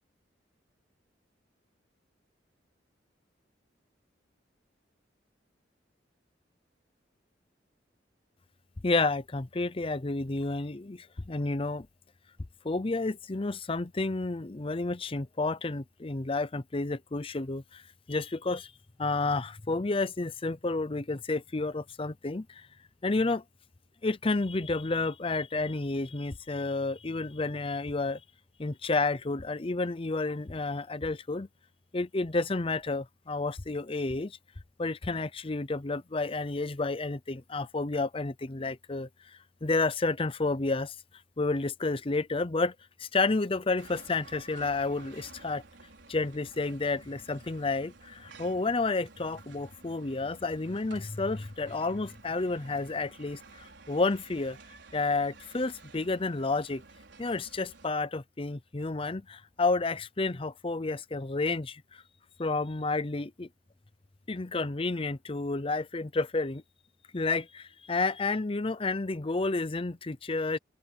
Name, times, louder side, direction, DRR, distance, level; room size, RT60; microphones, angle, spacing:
voice 1, 8.8-11.9 12.6-17.8 18.1-18.7 19.0-22.5 23.0-23.4 24.0-28.2 28.6-31.5 31.9-34.4 34.8-39.1 39.6-40.9 41.4-45.6 46.1-54.6 54.9-56.8 57.2-61.8 62.4-63.5 64.3-66.6 67.1-70.6, left 3 dB, 30° left, 0.7 m, -30 dB
sound 1, 43.8-57.9, right 3 dB, 75° right, 4.8 m, -53 dB
open air
head